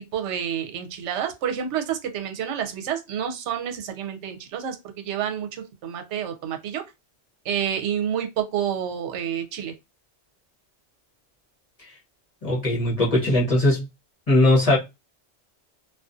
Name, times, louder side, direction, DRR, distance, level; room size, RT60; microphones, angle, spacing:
voice 1, 0.0-6.8 7.4-9.7, right 9 dB, 80° right, 0.9 m, -29 dB
voice 2, 12.4-13.8 14.3-14.8, left 1 dB, 35° left, 0.9 m, -19 dB
2.5 x 2.3 x 2.5 m
omnidirectional pair, 1.2 m